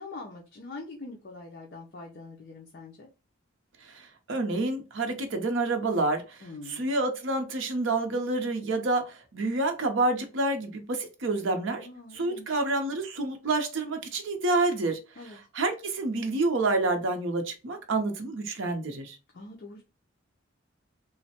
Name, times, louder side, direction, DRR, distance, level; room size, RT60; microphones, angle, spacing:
voice 1, 0.0-3.1 6.4-6.9 11.8-12.6 15.2-15.4 19.3-19.8, left 3 dB, 50° left, 0.5 m, -43 dB
voice 2, 3.9-11.9 12.1-15.0 15.2-19.2, right 2 dB, 65° right, 0.6 m, -28 dB
3.1 x 2.1 x 2.8 m
head